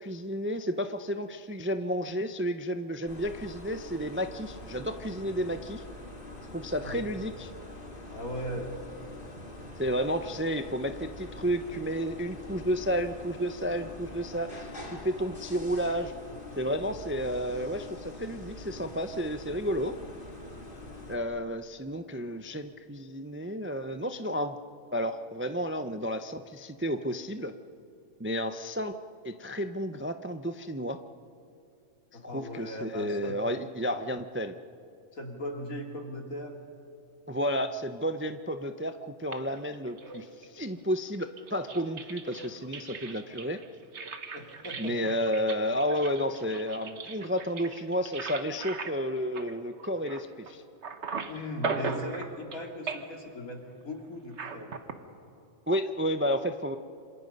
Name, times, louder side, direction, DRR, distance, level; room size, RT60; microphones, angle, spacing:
voice 1, 0.0-5.8 6.5-7.5 9.8-16.1 16.6-20.0 21.1-24.6 24.9-27.5 28.2-28.9 29.2-31.0 32.2-34.5 37.3-43.6 44.8-50.6 55.7-56.8, equal, 15° right, 8 dB, 0.4 m, -31 dB
sound 1, 3.1-21.1, left 2 dB, 40° left, 2.5 m, -44 dB
voice 2, 8.1-8.7 32.1-33.4 35.1-36.6 44.3-45.0 51.3-54.7, equal, 80° left, 2 dB, 3.0 m, -38 dB
sound 2, 39.3-40.6 41.2-50.5 50.8-52.6 52.9-53.3 54.3-54.9, right 4 dB, 55° right, 1.6 m, -38 dB
27.0 x 26.5 x 5.4 m, 2.6 s
omnidirectional pair, 1.4 m